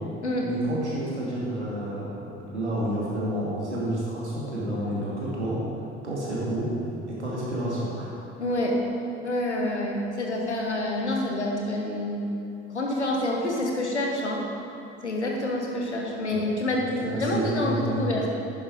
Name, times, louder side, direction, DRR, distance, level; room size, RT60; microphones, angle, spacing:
voice 1, 0.4-5.6 6.0-6.7 7.1-8.1 16.3-16.4 16.7-18.3, right 1 dB, 85° right, -6 dB, 2.5 m, -30 dB
voice 2, 8.4-8.8 9.2-12.3 12.7-14.4 15.0-18.3, left 1 dB, 90° left, 0 dB, 1.3 m, -27 dB
11.0 x 9.3 x 5.0 m, 2.7 s
figure-of-eight pair, 55°, 33 cm